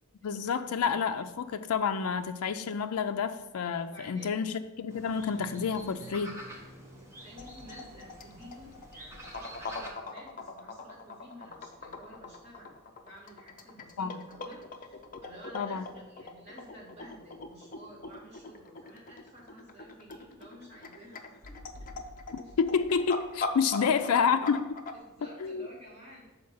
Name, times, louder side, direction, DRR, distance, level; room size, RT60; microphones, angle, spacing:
voice 1, 0.2-6.3 14.0-14.2 15.5-15.9 22.6-24.8 25.4-25.7, left 6 dB, 85° left, 8 dB, 0.4 m, -29 dB
voice 2, 3.8-4.4 5.1-5.2 5.8-6.1 6.9-21.9 22.4-22.5 23.6-24.1 24.9-26.2, equal, 30° right, -6 dB, 2.5 m, -52 dB
sound 1, 4.9-9.9, right 1 dB, 15° right, 1.1 m, -47 dB
sound 2, 7.4-24.9, left 3 dB, 40° left, 0.6 m, -41 dB
6.5 x 4.4 x 5.5 m, 1.1 s
head